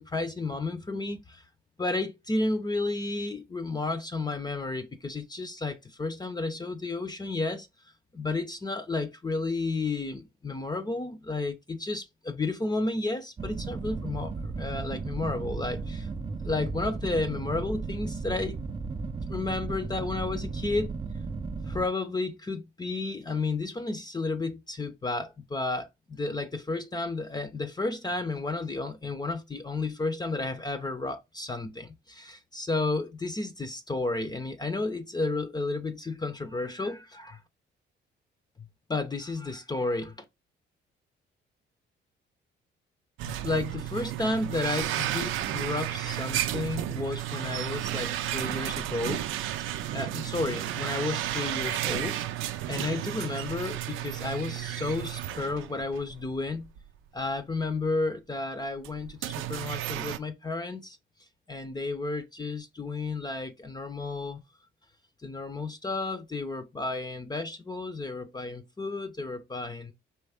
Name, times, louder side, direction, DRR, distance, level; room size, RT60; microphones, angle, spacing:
voice 1, 0.0-1.4 1.8-7.7 8.1-16.1 16.4-18.6 19.3-20.9 21.7-37.4 38.9-40.1 43.2-49.2 49.9-52.2 52.7-56.7 57.1-61.0 61.5-64.4 65.2-69.9, left 3 dB, 20° left, 0.6 m, -32 dB
sound 1, 13.4-21.9, right 4 dB, 25° right, 0.5 m, -35 dB
sound 2, 43.2-56.3 56.6-56.8 57.6-57.7 58.8-60.2, right 13 dB, 90° right, 0.5 m, -33 dB
4.3 x 3.1 x 3.5 m
cardioid pair, 90°, 20 cm